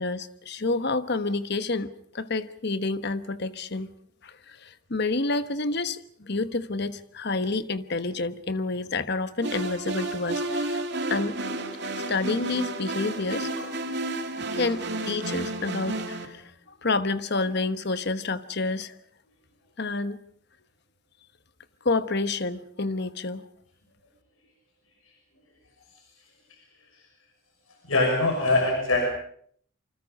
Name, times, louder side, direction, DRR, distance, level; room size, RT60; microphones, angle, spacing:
voice 1, 0.0-3.9 4.2-10.8 11.1-11.4 12.1-13.8 14.5-16.5 16.8-19.0 19.8-20.2 21.8-23.4, left 3 dB, 50° left, 12 dB, 1.2 m, -29 dB
sound 1, 9.4-16.3, right 2 dB, 55° right, 2.8 m, -31 dB
voice 2, 27.8-29.0, left 2 dB, 85° left, 2 dB, 5.8 m, -23 dB
27.5 x 25.0 x 5.4 m, 0.62 s
head